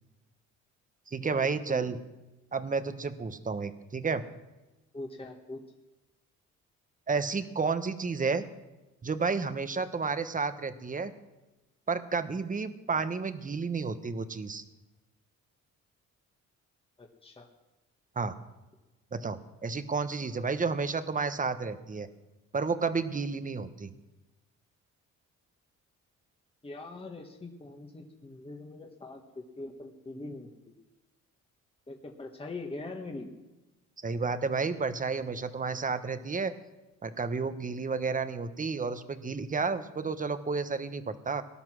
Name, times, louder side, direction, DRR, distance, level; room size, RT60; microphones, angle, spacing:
voice 1, 1.1-2.0 2.5-4.2 7.1-8.4 9.0-11.1 11.9-14.6 18.2-18.3 19.1-22.1 22.5-23.9 34.0-36.5 37.0-41.4, right 4 dB, 25° right, 11 dB, 1.2 m, -31 dB
voice 2, 4.9-5.6 17.0-17.5 26.6-30.5 31.9-33.3, left 2 dB, 20° left, 2 dB, 1.6 m, -42 dB
18.5 x 10.5 x 6.3 m, 1.1 s
cardioid pair, 90°, 30 cm